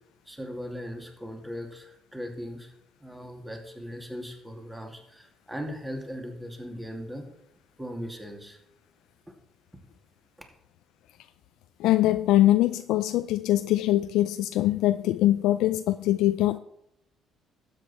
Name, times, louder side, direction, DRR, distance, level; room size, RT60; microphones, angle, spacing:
voice 1, 0.3-2.7 3.0-7.3 7.8-8.6, equal, 10° right, 2 dB, 2.6 m, -38 dB
voice 2, 11.8-16.6, left 14 dB, 80° left, 10 dB, 0.4 m, -23 dB
12.5 x 8.3 x 4.4 m, 0.78 s
supercardioid pair, 65°, 0 cm